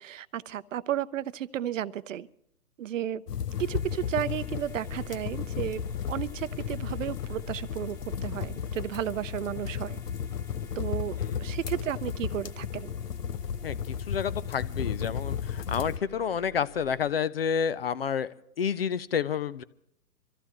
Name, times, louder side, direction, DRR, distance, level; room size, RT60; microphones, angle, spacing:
voice 1, 0.0-2.3 2.8-3.2 3.6-5.8 6.1-10.0 10.8-12.9, right 11 dB, 55° right, 16 dB, 0.7 m, -33 dB
sound 1, 3.3-16.0, left 8 dB, 80° left, 0.8 m, -34 dB
sound 2, 3.4-17.1, left 1 dB, 5° left, 0.8 m, -48 dB
voice 2, 13.6-19.6, left 7 dB, 40° left, 17 dB, 0.5 m, -30 dB
24.5 x 14.5 x 3.0 m, 0.77 s
hypercardioid pair, 140°, 47 cm